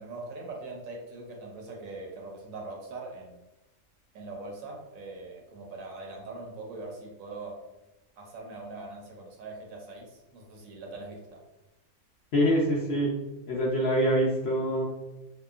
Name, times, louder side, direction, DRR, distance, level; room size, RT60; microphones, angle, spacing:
voice 1, 0.0-3.4 4.1-7.5 8.2-11.4, right 3 dB, 75° right, 0 dB, 1.0 m, -42 dB
voice 2, 12.3-13.2 13.5-14.8, equal, 60° left, -5 dB, 0.7 m, -25 dB
2.8 x 2.2 x 2.3 m, 1.0 s
omnidirectional pair, 1.5 m